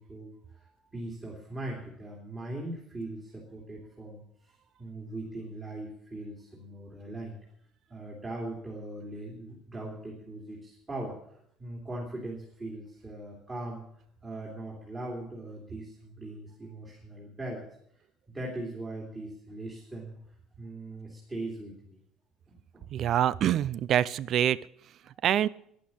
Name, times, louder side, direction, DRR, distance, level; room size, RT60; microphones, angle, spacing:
voice 1, 0.0-4.5 4.8-7.4 7.9-13.9 14.2-17.7 18.3-20.2 20.6-22.0 22.5-22.8, right 2 dB, 15° right, -3 dB, 2.9 m, -40 dB
voice 2, 22.9-24.6 25.2-25.5, right 10 dB, 45° right, 20 dB, 0.5 m, -25 dB
11.5 x 11.0 x 8.6 m, 0.71 s
cardioid pair, 155°, 0 cm